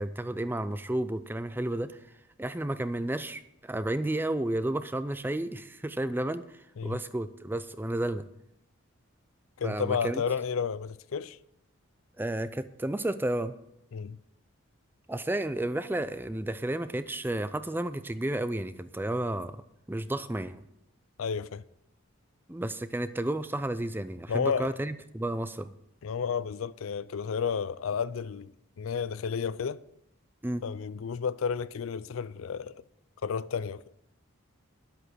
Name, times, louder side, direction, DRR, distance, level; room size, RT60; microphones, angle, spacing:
voice 1, 0.0-1.9 2.4-6.4 6.8-8.2 9.6-10.2 12.2-13.5 15.1-19.6 19.9-20.6 22.5-25.7 30.4-30.6, right 1 dB, 10° right, 0.4 m, -32 dB
voice 2, 9.6-11.4 13.9-14.2 21.2-21.6 24.3-24.7 26.0-29.8 30.6-32.8 33.2-33.8, left 6 dB, 75° left, 0.4 m, -32 dB
11.0 x 8.0 x 6.3 m
head